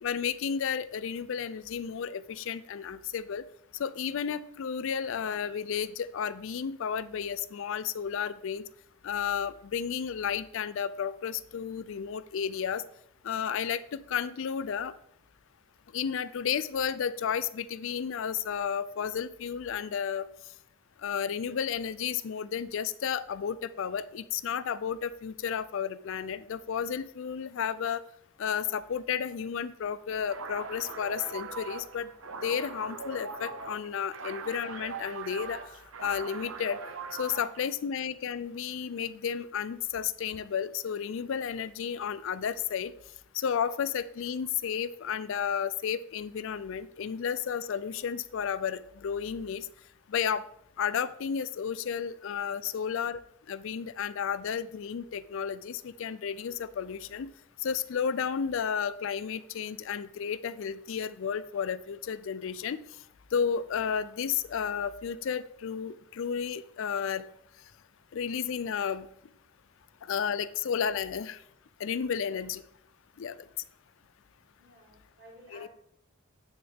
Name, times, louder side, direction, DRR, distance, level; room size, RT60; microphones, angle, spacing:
voice 1, 0.0-3.4 3.8-8.6 9.0-12.8 13.2-14.9 15.9-20.3 21.0-28.0 28.4-32.1 32.4-35.6 36.0-36.8 37.1-42.9 43.3-49.7 50.1-50.4 50.8-53.2 53.5-57.3 57.6-62.8 63.3-67.2 68.1-69.1 70.0-71.4 71.8-72.6 73.2-73.4 75.5-75.7, left 7 dB, 65° left, 16 dB, 0.4 m, -32 dB
sound 1, 30.2-37.7, right 4 dB, 75° right, 0.8 m, -41 dB
voice 2, 74.6-75.7, equal, 60° right, -4 dB, 3.7 m, -53 dB
9.4 x 6.3 x 3.5 m, 0.73 s
head